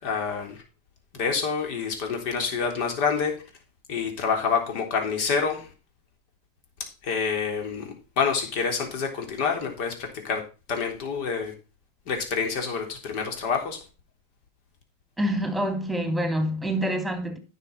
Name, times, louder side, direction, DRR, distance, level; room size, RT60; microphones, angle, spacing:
voice 1, 0.0-0.6 1.1-3.3 3.9-5.7 7.0-10.4 10.7-11.5 12.1-13.8, left 5 dB, 55° left, 3.5 m, -27 dB
voice 2, 15.2-17.4, equal, ahead, 2.9 m, -26 dB
9.9 x 6.4 x 5.7 m
hypercardioid pair, 110°, 0 cm